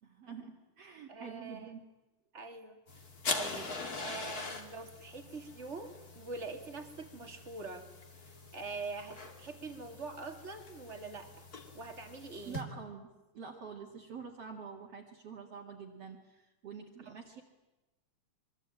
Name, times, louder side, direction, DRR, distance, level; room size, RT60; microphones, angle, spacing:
voice 1, 0.0-1.8 12.4-17.4, right 5 dB, 50° right, -2 dB, 3.0 m, -47 dB
voice 2, 1.1-1.7 2.3-2.8 3.2-7.9 8.2-11.5 11.7-12.6 17.1-17.2, right 3 dB, 25° right, 6 dB, 2.3 m, -44 dB
sound 1, 2.9-12.6, left 3 dB, 30° left, 2.5 m, -43 dB
26.5 x 23.0 x 8.9 m, 1.0 s
omnidirectional pair, 3.8 m